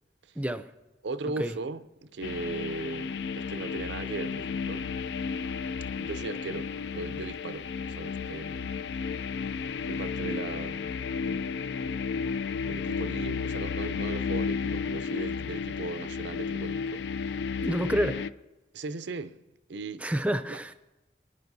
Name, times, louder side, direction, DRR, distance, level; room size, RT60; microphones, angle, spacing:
voice 1, 0.4-0.7 1.4-1.6 17.6-18.3 20.0-20.7, right 1 dB, 10° right, 0.4 m, -29 dB
voice 2, 1.0-4.9 6.0-8.8 9.9-11.7 12.6-17.0 18.7-19.4 19.7-20.1 20.5-20.7, right 3 dB, 85° right, 0.6 m, -38 dB
sound 1, 2.2-18.3, left 5 dB, 75° left, 0.4 m, -33 dB
24.5 x 10.0 x 2.7 m
head